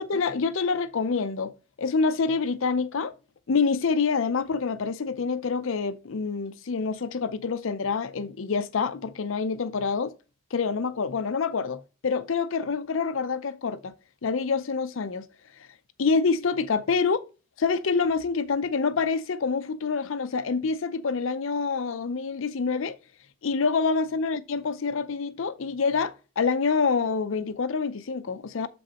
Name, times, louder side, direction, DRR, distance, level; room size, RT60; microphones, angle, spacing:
voice 1, 0.0-1.5 1.8-3.1 3.5-10.2 10.5-13.9 14.2-15.3 16.0-17.2 17.6-23.0 23.4-28.7, left 5 dB, 65° left, 0.5 m, -26 dB
7.0 x 5.3 x 2.9 m
head